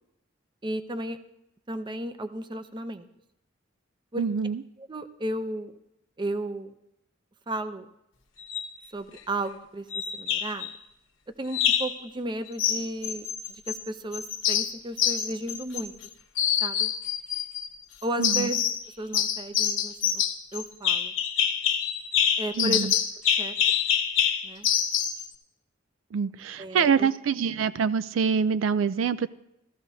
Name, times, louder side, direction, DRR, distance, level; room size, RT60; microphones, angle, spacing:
voice 1, 0.6-1.2 1.7-3.1 4.1-4.3 4.8-5.7 6.2-6.7 7.5-7.9 8.9-10.7 11.4-15.9 16.6-16.9 18.0-18.6 19.0-20.2 20.5-21.1 22.4-22.9 23.2-23.5 24.4-24.7 26.6-27.1, right 1 dB, 25° right, 10 dB, 0.6 m, -34 dB
voice 2, 4.2-4.6 18.2-18.5 22.6-22.9 26.1-29.3, right 6 dB, 75° right, 15 dB, 0.4 m, -25 dB
sound 1, 8.4-8.7 9.9-10.7 11.5-12.0 12.6-13.8 14.1-16.1 16.4-17.7 18.2-18.8 19.1-25.2, left 9 dB, 80° left, 1.1 m, -26 dB
15.5 x 14.0 x 2.7 m, 0.85 s
head